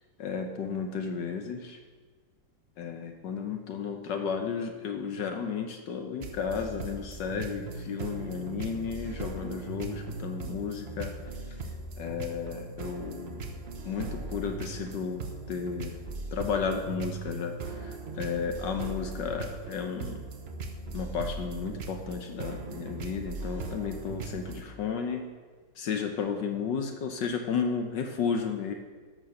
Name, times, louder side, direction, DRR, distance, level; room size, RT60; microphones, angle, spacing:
voice 1, 0.2-1.8 2.8-11.1 12.0-13.4 13.8-16.0 16.3-20.2 20.9-25.3 25.8-28.7, left 6 dB, 75° left, 4 dB, 1.5 m, -33 dB
sound 1, 6.2-24.6, right 3 dB, 45° right, 1.0 m, -39 dB
12.5 x 6.9 x 6.6 m, 1.5 s
omnidirectional pair, 2.0 m